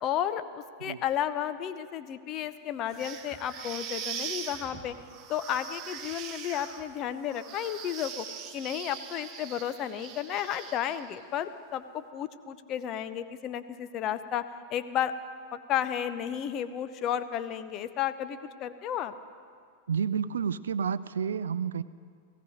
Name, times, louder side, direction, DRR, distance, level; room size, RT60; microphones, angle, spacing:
voice 1, 0.0-5.0 5.3-8.3 8.5-14.4 14.7-15.1 15.5-19.1, left 10 dB, 35° left, 11 dB, 0.8 m, -32 dB
sound 1, 2.9-11.2, right 7 dB, 30° right, 1.5 m, -41 dB
voice 2, 19.9-21.8, right 7 dB, 65° right, 16 dB, 0.4 m, -30 dB
17.5 x 16.0 x 5.1 m, 2.1 s
figure-of-eight pair, 90°, 0 cm